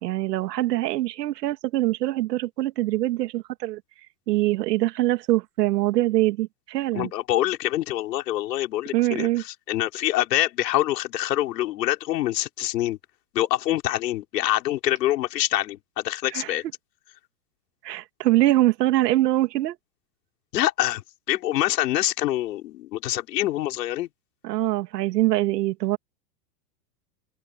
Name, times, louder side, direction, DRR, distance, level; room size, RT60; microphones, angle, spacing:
voice 1, 0.0-3.8 4.3-7.1 8.9-9.4 16.3-16.6 17.8-19.8 24.4-26.0, right 16 dB, 75° right, 2.6 m, -23 dB
voice 2, 6.9-13.0 13.3-16.6 20.5-21.0 21.3-24.1, left 14 dB, 80° left, 4.3 m, -25 dB
open air
supercardioid pair, 140°, 49 cm